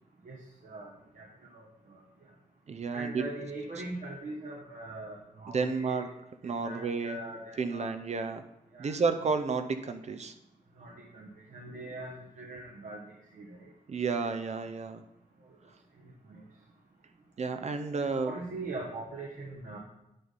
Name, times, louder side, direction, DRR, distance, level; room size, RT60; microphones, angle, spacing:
voice 1, 0.2-1.3 1.5-2.0 2.9-6.1 6.5-7.9 8.7-9.0 10.8-13.0 13.3-13.7 16.0-16.4 18.0-19.8, right 2 dB, 65° right, -2 dB, 1.2 m, -42 dB
voice 2, 2.7-3.2 5.5-6.1 6.4-7.2 7.6-8.4 8.8-10.3 13.9-15.0 17.4-18.3, right 4 dB, 50° right, 8 dB, 0.6 m, -31 dB
9.8 x 4.1 x 5.3 m, 0.87 s
wide cardioid pair, 145°, 14 cm